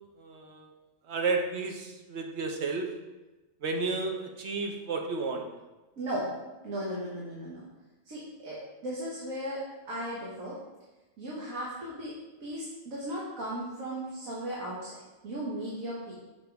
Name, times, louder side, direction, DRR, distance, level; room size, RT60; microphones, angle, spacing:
voice 1, 0.2-0.7 1.1-2.9 3.6-5.5, right 3 dB, 55° right, 2 dB, 1.0 m, -32 dB
voice 2, 6.0-6.3 6.6-7.6 8.0-10.6 11.2-12.2 12.4-16.1, right 1 dB, 80° right, -6 dB, 1.7 m, -36 dB
6.5 x 5.9 x 3.5 m, 1.1 s
omnidirectional pair, 1.4 m